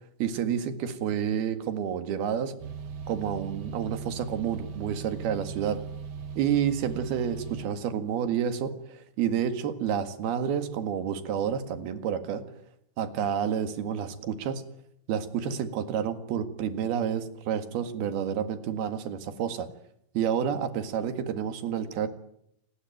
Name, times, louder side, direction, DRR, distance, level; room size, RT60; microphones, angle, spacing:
voice 1, 0.2-2.5 3.1-5.8 6.4-12.4 13.0-14.6 15.1-19.7 20.2-22.1, right 8 dB, 80° right, 9 dB, 3.8 m, -29 dB
sound 1, 2.6-7.7, right 6 dB, 60° right, 1.7 m, -39 dB
28.5 x 20.5 x 9.2 m, 0.75 s
omnidirectional pair, 4.4 m